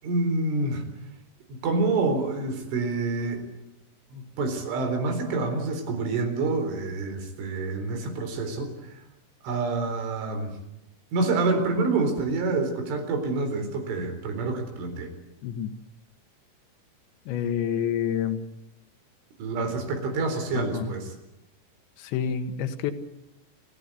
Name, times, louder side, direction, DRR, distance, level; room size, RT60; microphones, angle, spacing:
voice 1, 0.0-0.8 1.6-3.4 4.1-9.0 9.4-10.6 11.1-15.1 19.4-21.1, right 3 dB, 85° right, 6 dB, 6.5 m, -27 dB
voice 2, 17.3-18.4 20.6-20.9 22.0-22.9, left 8 dB, 75° left, 9 dB, 3.8 m, -28 dB
29.5 x 15.5 x 8.4 m, 0.91 s
omnidirectional pair, 5.4 m